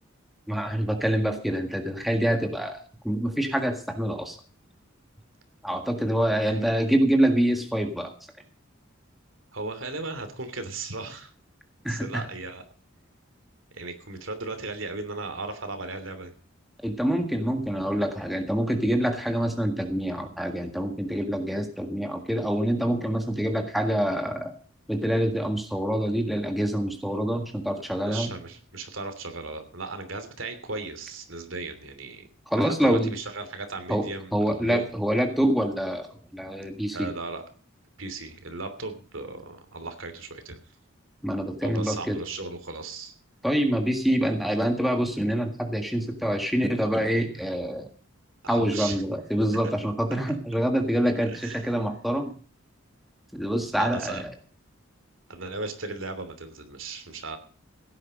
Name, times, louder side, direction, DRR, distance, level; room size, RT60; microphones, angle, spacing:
voice 1, 0.5-2.8 3.0-4.4 5.6-8.1 11.8-12.2 16.8-24.5 24.9-28.3 32.5-33.1 33.9-34.0 34.3-36.1 36.3-37.1 41.2-42.2 43.4-47.8 48.5-52.3 53.3-54.3, equal, ahead, 4 dB, 1.7 m, -26 dB
voice 2, 6.4-6.8 9.5-11.3 11.9-12.6 13.7-16.3 27.7-32.3 32.6-34.8 36.9-37.4 38.0-40.6 41.6-43.1 48.4-49.0 51.3-51.7 53.8-54.2 55.3-57.4, right 3 dB, 70° right, 8 dB, 3.0 m, -36 dB
16.5 x 9.8 x 5.2 m, 0.42 s
head